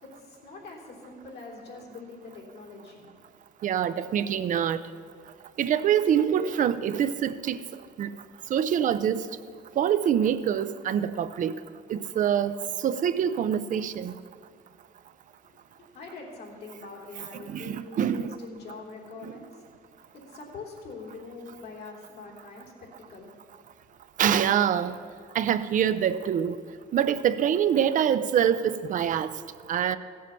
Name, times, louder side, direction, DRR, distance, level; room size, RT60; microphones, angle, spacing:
voice 1, 0.0-3.1 15.8-19.7 20.1-23.3 23.6-24.0, left 3 dB, 70° left, -2 dB, 3.3 m, -44 dB
voice 2, 3.6-4.8 5.6-7.6 8.0-8.1 8.5-9.3 9.8-11.6 11.9-12.6 12.8-14.1 17.5-18.4 19.2-19.3 24.2-25.0 25.3-26.5 26.9-29.3 29.7-30.0, right 9 dB, 50° right, 13 dB, 0.5 m, -25 dB
15.0 x 7.6 x 6.9 m, 2.2 s
cardioid pair, 110°, 17 cm